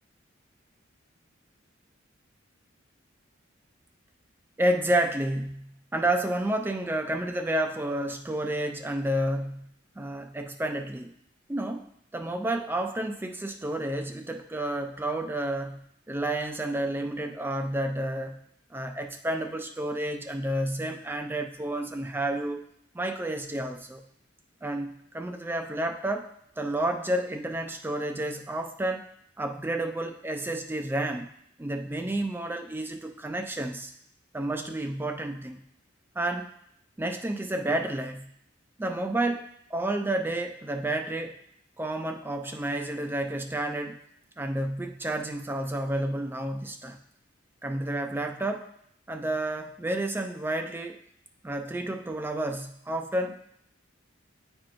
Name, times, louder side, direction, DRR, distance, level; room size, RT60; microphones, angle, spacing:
voice 1, 4.6-9.7 10.0-11.1 11.5-15.8 16.1-18.4 18.7-22.6 22.9-24.0 24.6-26.3 26.6-29.1 29.4-31.3 31.6-33.9 34.3-35.6 36.2-36.5 37.0-38.3 38.8-41.4 41.8-44.0 44.4-47.0 47.6-48.7 49.1-51.0 51.4-53.4, right 1 dB, 10° right, 5 dB, 0.3 m, -30 dB
8.4 x 4.4 x 2.5 m, 0.71 s
head